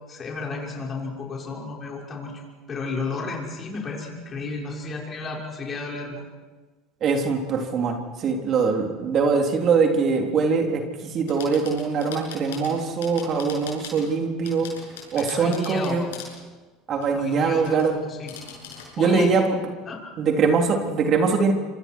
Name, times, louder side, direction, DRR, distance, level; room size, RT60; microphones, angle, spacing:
voice 1, 0.1-6.2 15.1-16.0 17.1-18.3 19.0-19.4 19.9-20.0, left 3 dB, 35° left, -2 dB, 6.2 m, -32 dB
voice 2, 7.0-14.7 15.1-16.0 16.9-18.0 19.0-19.6 20.2-21.5, right 5 dB, 45° right, 2 dB, 3.8 m, -22 dB
sound 1, 11.3-14.2 14.4-16.4 17.0-17.9 18.3-18.9, left 6 dB, 75° left, 7.3 m, -42 dB
27.0 x 26.5 x 4.8 m, 1.3 s
hypercardioid pair, 75°, 0 cm